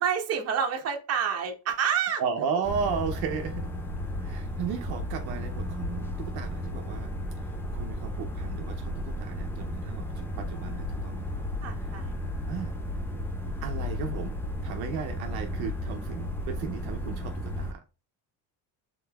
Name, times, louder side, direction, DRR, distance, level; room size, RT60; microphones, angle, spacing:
voice 1, 0.0-2.2 11.6-12.1, right 7 dB, 40° right, 0.9 m, -28 dB
voice 2, 2.2-3.7 4.2-7.1 7.7-11.2 12.5-12.7 13.6-17.8, right 6 dB, 65° right, 0.7 m, -35 dB
sound 1, 2.6-17.7, left 1 dB, 5° left, 0.5 m, -34 dB
5.2 x 3.8 x 2.2 m
cardioid pair, 150°, 39 cm